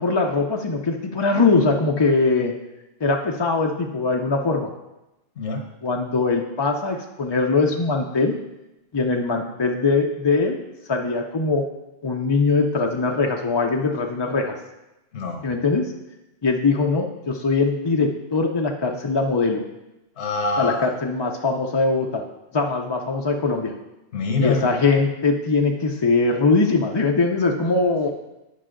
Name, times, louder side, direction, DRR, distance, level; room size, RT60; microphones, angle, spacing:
voice 1, 0.0-2.5 3.0-4.7 5.8-8.3 8.9-10.6 10.9-11.7 12.0-14.5 15.4-15.9 16.4-19.6 20.6-22.2 22.5-23.7 24.4-28.1, left 3 dB, 40° left, 2 dB, 0.3 m, -21 dB
voice 2, 15.1-15.4 20.2-20.9 24.1-24.7, left 3 dB, 75° left, 3 dB, 1.2 m, -24 dB
9.3 x 5.5 x 3.7 m, 0.98 s
omnidirectional pair, 1.2 m